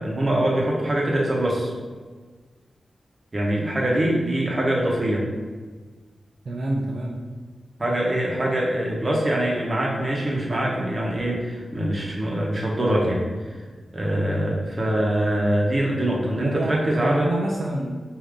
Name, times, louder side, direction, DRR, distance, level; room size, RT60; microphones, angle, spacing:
voice 1, 0.0-1.7 3.3-5.3 7.8-13.6 13.9-17.3, right 1 dB, 35° right, -3 dB, 1.0 m, -23 dB
voice 2, 6.4-7.2 16.4-18.0, right 1 dB, 60° right, -2 dB, 0.4 m, -26 dB
4.8 x 2.7 x 3.7 m, 1.4 s
wide cardioid pair, 90°, 0 cm